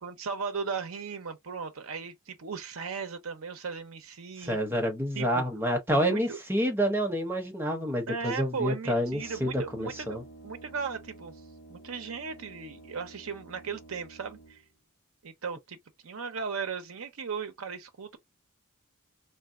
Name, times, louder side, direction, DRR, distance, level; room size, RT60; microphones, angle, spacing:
voice 1, 0.0-4.6 5.1-5.4 5.9-6.4 8.1-11.3 11.7-14.6 15.2-15.8 16.0-18.2, right 5 dB, 80° right, 0.7 m, -37 dB
voice 2, 4.4-10.2, equal, 10° right, 0.8 m, -28 dB
Brass instrument, 9.0-14.8, right 2 dB, 45° left, 1.1 m, -51 dB
3.3 x 2.5 x 2.4 m
head